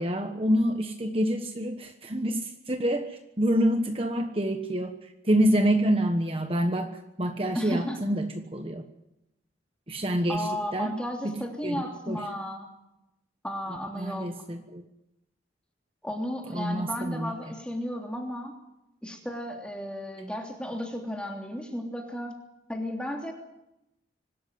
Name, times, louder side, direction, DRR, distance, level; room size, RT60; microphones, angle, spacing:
voice 1, 0.0-8.8 9.9-10.9 11.2-11.3 11.6-12.2 14.0-14.8 16.5-17.3, equal, 30° right, 5 dB, 1.3 m, -27 dB
voice 2, 7.5-8.0 10.3-12.7 13.4-14.3 16.0-18.5 19.0-22.4 22.7-23.3, equal, 5° left, 1 dB, 3.1 m, -34 dB
25.0 x 13.0 x 9.4 m, 0.89 s
head